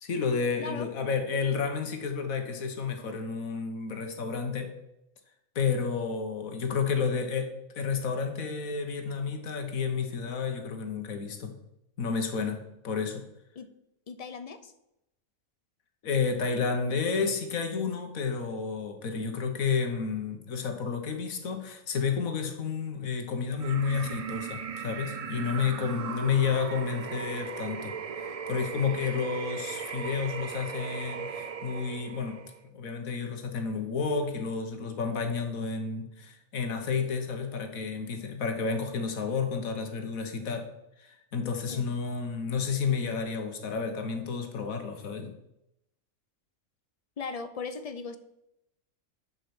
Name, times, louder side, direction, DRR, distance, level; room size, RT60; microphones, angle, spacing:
voice 1, 0.0-4.7 5.5-11.6 12.0-13.2 16.0-28.0 28.5-32.4 32.7-40.7 41.0-45.3, left 5 dB, 85° left, 5 dB, 1.6 m, -31 dB
voice 2, 0.6-0.9 13.6-13.7 14.1-14.7 25.6-26.2 41.7-41.9 47.2-48.2, left 5 dB, 45° left, 11 dB, 0.5 m, -39 dB
sound 1, 23.6-32.6, right 6 dB, 65° right, 0.3 m, -38 dB
7.8 x 5.5 x 7.1 m, 0.84 s
omnidirectional pair, 1.4 m